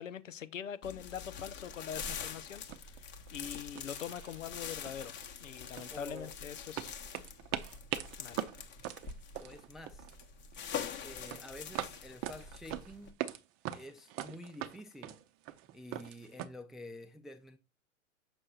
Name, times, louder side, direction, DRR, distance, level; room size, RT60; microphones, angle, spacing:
voice 1, 0.0-5.1 5.4-7.0 8.2-8.4, left 8 dB, 85° left, 0.8 m, -43 dB
sound 1, 0.8-13.1, left 7 dB, 30° left, 1.0 m, -45 dB
sound 2, 2.2-2.3 2.7-3.0 3.3-3.5 3.7-4.6 4.8-6.3 6.8-10.2 10.5-10.9 11.3-13.4 13.6-16.5, right 12 dB, 35° right, 0.7 m, -41 dB
voice 2, 5.9-6.3 9.4-10.1 11.0-13.2 13.7-15.2 15.7-17.6, left 1 dB, ahead, 0.4 m, -49 dB
6.4 x 6.1 x 2.4 m
hypercardioid pair, 100°, 37 cm